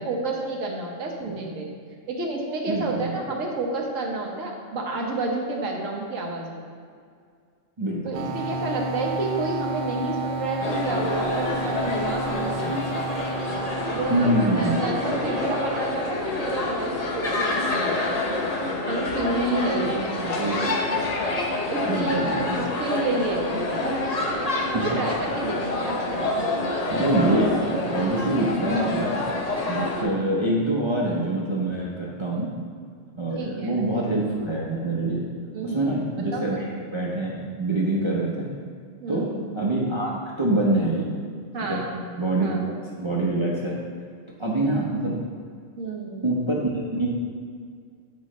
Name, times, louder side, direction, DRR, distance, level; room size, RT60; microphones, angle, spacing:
voice 1, 0.0-1.7 2.1-6.6 8.0-12.8 13.9-18.4 18.9-20.4 21.7-24.1 24.7-26.3 33.3-33.8 35.5-36.0 36.3-36.6 39.0-39.4 41.5-42.0 42.4-42.6 45.8-46.2, right 2 dB, 80° right, 0 dB, 1.4 m, -30 dB
voice 2, 2.7-3.2 7.8-8.2 14.1-14.8 19.7-19.9 20.4-20.6 21.9-22.6 24.7-24.8 26.9-29.2 29.7-32.5 33.2-35.2 35.6-38.5 39.1-39.3 39.5-40.1 40.4-41.1 41.7-41.8 42.2-43.7 44.4-45.1 46.2-47.1, right 2 dB, 30° right, -5 dB, 0.7 m, -25 dB
sound 1, 8.1-15.8, right 2 dB, 65° right, 0.8 m, -31 dB
sound 2, 10.6-30.0, left 2 dB, 35° left, 0.7 m, -27 dB
sound 3, 14.2-19.1, left 5 dB, 70° left, 0.4 m, -38 dB
8.6 x 6.2 x 3.1 m, 2.1 s
omnidirectional pair, 1.3 m